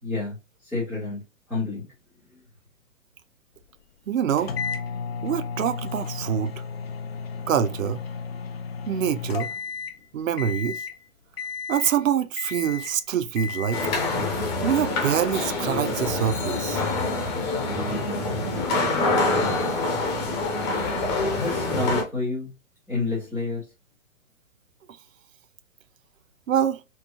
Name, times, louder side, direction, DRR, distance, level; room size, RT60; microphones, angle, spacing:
voice 1, 0.0-0.4 0.6-1.2 1.5-1.9 21.3-22.5 22.9-23.6, left 3 dB, ahead, 0.3 m, -28 dB
voice 2, 4.1-4.5 5.2-6.6 7.5-8.0 8.9-9.5 10.1-10.8 11.7-13.8 14.6-16.8 26.5-26.8, right 9 dB, 75° right, 0.5 m, -25 dB
sound 1, 4.4-10.0 10.4-11.0 11.4-12.0 12.4-13.0 13.4-14.0, left 5 dB, 50° left, 0.6 m, -33 dB
sound 2, 13.7-22.0, left 2 dB, 20° left, 0.9 m, -26 dB
4.5 x 2.3 x 2.9 m
figure-of-eight pair, 125°, 40 cm